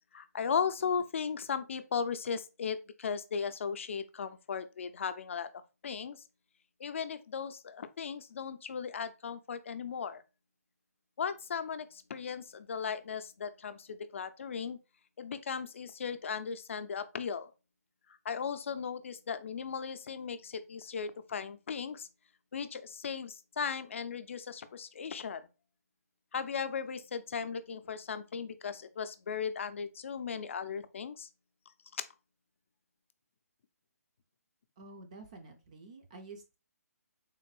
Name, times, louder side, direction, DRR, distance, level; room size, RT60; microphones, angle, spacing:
voice 1, 0.1-5.5 5.8-6.2 6.8-10.2 11.2-14.8 15.2-17.5 18.1-22.1 22.5-25.5 26.3-31.3 31.9-32.0, left 6 dB, 50° left, 0.4 m, -37 dB
voice 2, 34.8-36.6, right 3 dB, 25° right, 0.4 m, -50 dB
3.7 x 2.5 x 3.1 m
hypercardioid pair, 165°, 9 cm